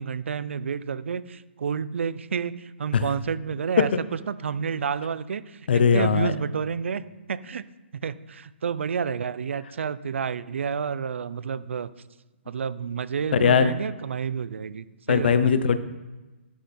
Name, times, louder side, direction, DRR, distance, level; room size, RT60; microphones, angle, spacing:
voice 1, 0.0-7.0 7.3-7.6 7.9-11.9 12.5-15.5, right 6 dB, 75° right, 17 dB, 0.5 m, -30 dB
voice 2, 5.7-6.3 13.3-13.7 15.1-15.8, left 6 dB, 55° left, 13 dB, 0.7 m, -20 dB
11.0 x 6.6 x 4.2 m, 1.2 s
hypercardioid pair, 175°, 7 cm